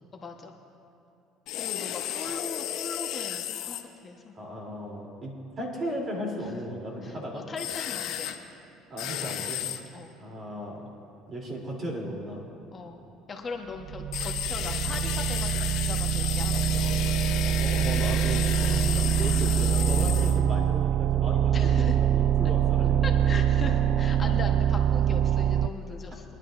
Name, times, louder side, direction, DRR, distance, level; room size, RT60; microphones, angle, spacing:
voice 1, 0.1-0.6 1.5-4.3 7.0-8.3 9.9-10.1 12.7-13.0 13.3-16.6 21.5-22.0 23.0-26.2, left 4 dB, 30° left, 3 dB, 1.1 m, -39 dB
sound 1, 1.5-3.8 7.6-8.4 9.0-9.8 14.1-20.4, left 11 dB, 70° left, 0.8 m, -33 dB
voice 2, 4.3-7.4 8.9-9.6 10.2-10.9 11.3-12.4 17.4-23.0, right 1 dB, 40° right, -1 dB, 3.2 m, -35 dB
sound 2, 13.8-25.7, right 9 dB, 60° right, 0.3 m, -24 dB
23.5 x 11.0 x 2.6 m, 2.8 s
supercardioid pair, 90°, 0 cm